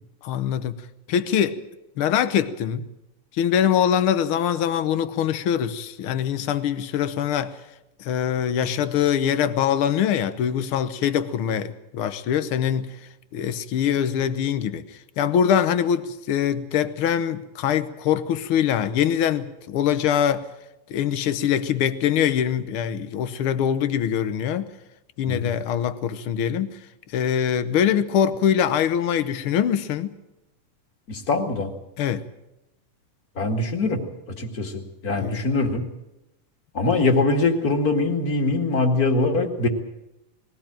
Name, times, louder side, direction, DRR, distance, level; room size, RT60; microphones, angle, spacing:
voice 1, 0.2-0.7 1.1-1.6 2.0-2.9 3.3-7.6 8.0-13.0 13.3-14.8 15.2-20.5 20.9-24.7 25.2-26.8 27.1-30.1 32.0-32.2 35.2-35.4, left 9 dB, 75° left, 1.2 m, -23 dB
voice 2, 31.1-31.7 33.4-34.0 34.4-35.9 36.7-39.7, left 3 dB, 30° left, 2.2 m, -23 dB
21.0 x 17.0 x 8.9 m
omnidirectional pair, 3.7 m